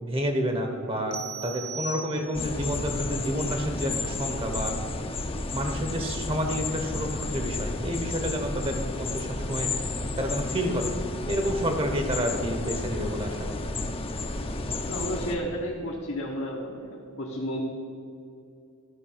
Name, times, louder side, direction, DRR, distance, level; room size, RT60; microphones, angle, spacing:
voice 1, 0.0-4.7 5.5-9.7 10.2-11.0 11.3-13.6, equal, 25° right, 5 dB, 0.9 m, -29 dB
sound 1, 1.1-2.6, right 3 dB, 50° right, 1.0 m, -38 dB
sound 2, 2.3-15.4, left 2 dB, 25° left, 0.6 m, -32 dB
voice 2, 14.9-17.6, equal, 70° left, -2 dB, 1.1 m, -32 dB
13.0 x 5.4 x 5.6 m, 2.5 s
head